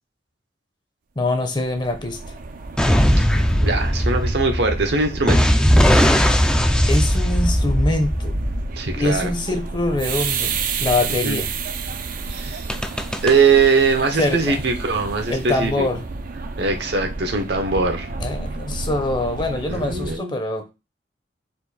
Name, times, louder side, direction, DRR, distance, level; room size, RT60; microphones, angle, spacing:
voice 1, 1.2-2.2 6.9-8.4 9.0-10.5 10.8-11.5 14.2-14.6 15.3-16.0 18.2-20.7, left 2 dB, 25° left, 6 dB, 0.7 m, -24 dB
sound 1, 1.5-20.2, right 4 dB, 50° right, 0.5 m, -31 dB
sound 2, 2.8-9.2 12.7-13.3, equal, 5° left, 0.4 m, -18 dB
voice 2, 3.6-5.4 8.8-9.3 11.2-11.4 12.3-12.6 13.2-15.9 16.6-18.1 19.7-20.4, right 4 dB, 65° right, 4 dB, 0.9 m, -21 dB
4.5 x 2.6 x 4.1 m, 0.26 s
head